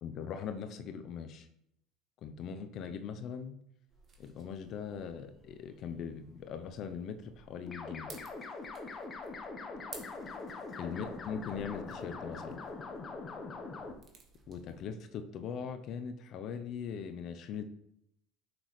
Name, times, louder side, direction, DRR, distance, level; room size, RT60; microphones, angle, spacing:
voice 1, 0.0-1.5 2.2-3.5 4.2-8.1 10.7-12.6 14.5-17.6, left 7 dB, 55° left, 9 dB, 0.7 m, -40 dB
sound 1, 3.9-14.9, right 4 dB, 40° right, 1.6 m, -57 dB
sound 2, 7.7-13.9, left 3 dB, 35° left, 1.0 m, -43 dB
6.2 x 6.0 x 3.2 m, 0.75 s
hypercardioid pair, 85°, 0 cm